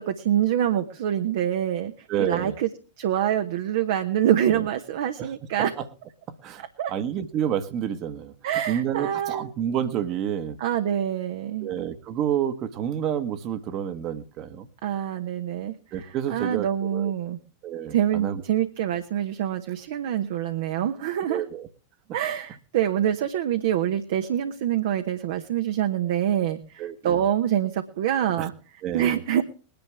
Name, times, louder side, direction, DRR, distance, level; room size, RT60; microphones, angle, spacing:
voice 1, 0.0-1.9 2.2-2.7 3.0-5.7 6.8-6.9 8.4-9.5 10.6-11.7 14.8-16.0 16.3-17.4 17.9-21.4 22.1-28.5 28.9-29.4, right 10 dB, 55° right, 7 dB, 1.0 m, -25 dB
voice 2, 2.1-2.5 4.5-4.6 5.2-5.3 5.6-5.9 6.4-6.6 6.9-8.3 8.7-10.6 11.6-14.7 15.9-17.1 17.6-18.4 21.3-21.7 26.8-27.2 28.4-28.5 28.8-29.2, right 9 dB, 35° right, 10 dB, 1.3 m, -29 dB
21.0 x 10.5 x 3.5 m, 0.36 s
figure-of-eight pair, 90°, 0 cm